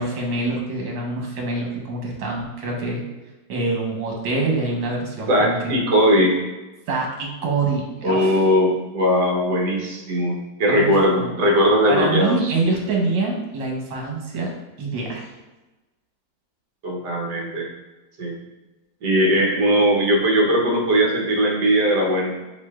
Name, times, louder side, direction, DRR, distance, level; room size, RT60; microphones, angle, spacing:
voice 1, 0.0-3.0 3.5-5.5 6.9-8.4 10.7-11.4 11.9-14.5 14.8-15.3, right 3 dB, 85° right, 0 dB, 1.7 m, -25 dB
voice 2, 5.3-6.4 8.0-12.5 16.8-17.7 18.2-18.3 19.0-22.4, equal, 65° right, -1 dB, 1.5 m, -19 dB
7.6 x 2.6 x 2.3 m, 1.1 s
omnidirectional pair, 2.0 m